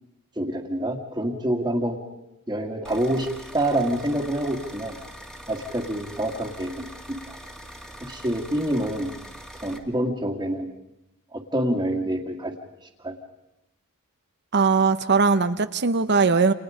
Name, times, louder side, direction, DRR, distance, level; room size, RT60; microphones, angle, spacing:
voice 1, 0.4-2.0 2.5-3.3 3.5-5.0 5.5-6.9 7.3-7.4 8.0-9.1 9.6-10.7 11.3-12.5 13.0-13.1, right 1 dB, 15° right, -4 dB, 2.1 m, -26 dB
sound 1, 2.8-9.8, equal, 5° left, 2.2 m, -43 dB
voice 2, 14.5-16.5, right 4 dB, 50° right, 11 dB, 0.9 m, -20 dB
30.0 x 28.0 x 5.1 m, 0.89 s
head